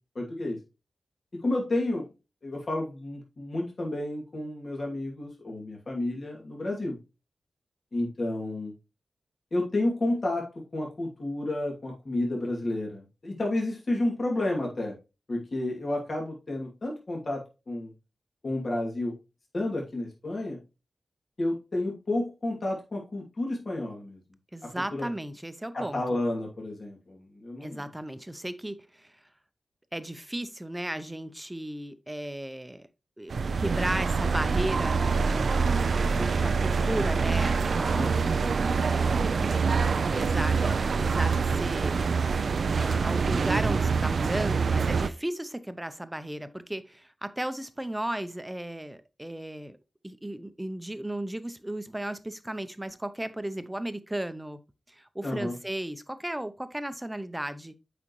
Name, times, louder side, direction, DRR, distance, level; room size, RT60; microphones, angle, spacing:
voice 1, 0.1-0.6 1.3-2.1 2.4-7.0 7.9-8.7 9.5-14.9 15.3-17.9 18.4-19.1 19.5-20.6 21.4-24.2 24.6-25.1 25.7-27.9 38.0-38.4 55.2-55.6, left 1 dB, 55° left, 2.6 m, -31 dB
voice 2, 24.5-26.2 27.6-29.1 29.9-32.9 33.2-35.6 36.1-38.2 38.6-39.2 40.1-42.0 42.8-49.8 50.0-54.6 54.9-57.7, right 1 dB, 10° right, 0.8 m, -35 dB
sound 1, 33.3-45.1, right 5 dB, 75° right, 0.4 m, -25 dB
8.2 x 5.1 x 3.1 m
cardioid pair, 60°, 0 cm